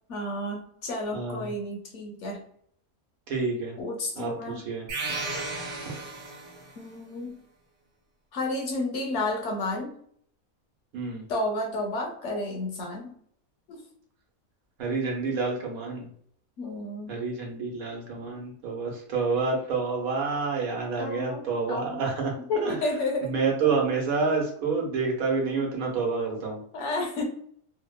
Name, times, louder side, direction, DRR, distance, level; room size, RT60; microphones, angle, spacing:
voice 1, 0.1-2.4 3.8-4.6 6.8-7.4 8.3-9.9 11.3-13.1 13.7-13.8 16.6-17.1 21.0-22.1 22.5-23.3 23.6-23.7 26.7-27.2, left 2 dB, 65° left, 2 dB, 0.8 m, -31 dB
voice 2, 1.1-1.5 3.3-3.7 4.2-4.9 10.9-11.2 14.8-16.1 17.1-22.3 22.6-22.8 23.2-26.6, right 4 dB, 80° right, 0 dB, 1.2 m, -28 dB
sound 1, 4.9-6.8, right 3 dB, 60° right, 0.9 m, -34 dB
2.9 x 2.0 x 2.2 m, 0.63 s
omnidirectional pair, 1.5 m